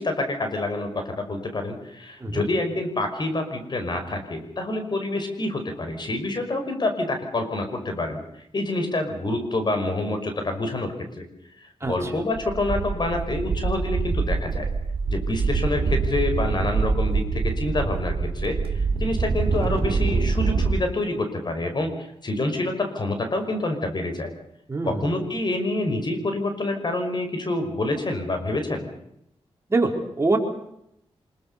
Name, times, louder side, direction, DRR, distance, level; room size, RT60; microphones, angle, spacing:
voice 1, 0.0-8.2 8.5-11.3 11.8-14.7 15.1-24.3 24.8-28.9, left 2 dB, 45° left, 6 dB, 5.6 m, -27 dB
voice 2, 11.8-12.1 24.7-25.1 29.7-30.4, right 3 dB, 25° right, 2 dB, 4.6 m, -24 dB
sound 1, 11.9-12.1 12.4-20.8, right 4 dB, 65° right, 3.6 m, -25 dB
25.5 x 22.5 x 6.9 m, 0.78 s
wide cardioid pair, 95°, 10 cm